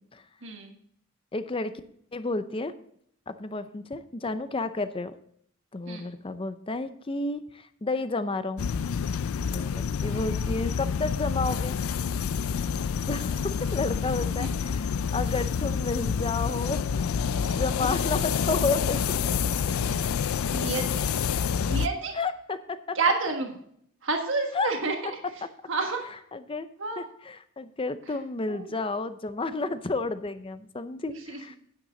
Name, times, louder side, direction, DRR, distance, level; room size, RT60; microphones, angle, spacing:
voice 1, 0.4-0.7 5.9-6.1 10.1-10.2 13.7-13.8 14.4-14.5 17.8-18.0 19.8-21.0 21.6-22.1 22.9-23.5 24.0-25.2 25.7-26.0 26.8-27.1 28.5-28.7 31.1-31.4, right 4 dB, 65° right, 3 dB, 1.4 m, -30 dB
voice 2, 1.3-1.7 2.1-2.7 3.3-5.1 5.7-8.7 9.5-11.7 13.1-16.8 17.4-19.0 22.1-23.0 24.5-24.7 26.3-26.7 27.0-31.6, left 3 dB, 25° left, 12 dB, 0.6 m, -31 dB
sound 1, 8.6-21.9, left 6 dB, 90° left, 0.4 m, -28 dB
9.7 x 9.1 x 3.9 m, 0.67 s
head